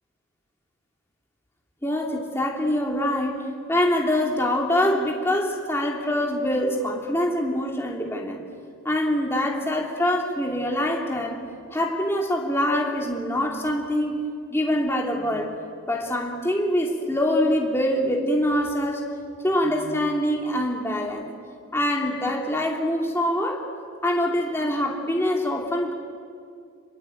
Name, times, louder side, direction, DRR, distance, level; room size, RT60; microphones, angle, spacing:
voice 1, 1.8-3.4 3.7-8.4 8.8-11.4 11.7-14.2 14.5-15.5 15.9-19.0 19.4-21.3 21.7-23.6 24.0-25.9, left 1 dB, 10° left, 0 dB, 3.0 m, -24 dB
26.5 x 22.5 x 9.2 m, 2.3 s
head